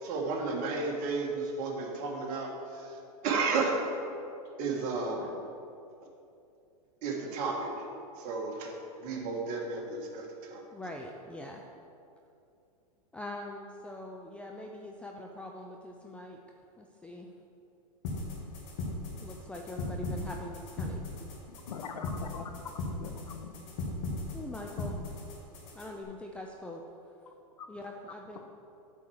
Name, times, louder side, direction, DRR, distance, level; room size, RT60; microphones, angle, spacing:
voice 1, 0.0-3.8 4.6-5.3 7.0-7.7 8.2-10.6, right 4 dB, 45° right, 0 dB, 1.7 m, -33 dB
voice 2, 10.7-11.6 13.1-16.4 16.8-17.3 19.2-21.1 24.3-25.0 25.7-26.8 27.7-28.4, left 1 dB, 5° left, 1 dB, 0.5 m, -43 dB
sound 1, 18.0-26.0, left 2 dB, 55° left, 2.0 m, -38 dB
voice 3, 21.5-22.6 23.0-23.5 27.6-27.7, left 6 dB, 80° left, 6 dB, 0.9 m, -42 dB
8.3 x 4.5 x 6.4 m, 2.6 s
hypercardioid pair, 110°, 19 cm